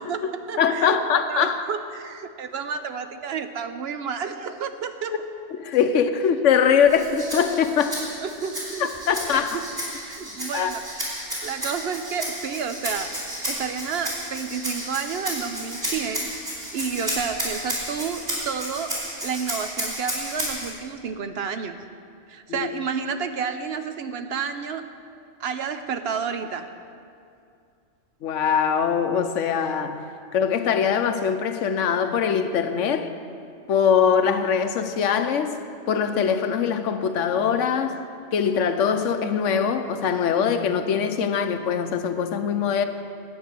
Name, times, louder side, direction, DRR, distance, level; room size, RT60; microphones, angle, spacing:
voice 1, 0.0-1.0 1.3-5.1 8.2-8.9 9.3-9.7 10.1-13.1 13.5-16.4 16.7-19.0 19.2-21.8 22.3-24.9 25.4-26.7, right 6 dB, 65° right, 0.7 m, -30 dB
voice 2, 0.6-1.6 5.5-8.1 8.8-9.6 10.5-10.7 22.5-22.7 28.2-30.0 30.3-33.1 33.7-35.6 35.9-38.0 38.3-42.8, left 7 dB, 75° left, 1.0 m, -22 dB
Rattle (instrument), 6.9-20.7, equal, 40° right, 3.8 m, -32 dB
11.0 x 8.6 x 6.7 m
omnidirectional pair, 1.3 m